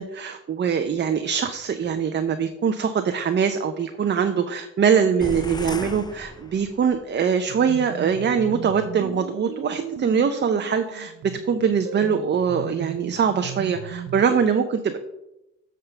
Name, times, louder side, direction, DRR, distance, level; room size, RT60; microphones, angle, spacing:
voice 1, 0.0-15.0, right 6 dB, 35° right, 8 dB, 0.6 m, -23 dB
sound 1, 5.2-7.1, left 2 dB, 15° left, 0.5 m, -35 dB
sound 2, 7.5-14.3, right 10 dB, 65° right, 0.7 m, -37 dB
7.9 x 3.7 x 6.7 m, 0.89 s
cardioid pair, 90°, 30 cm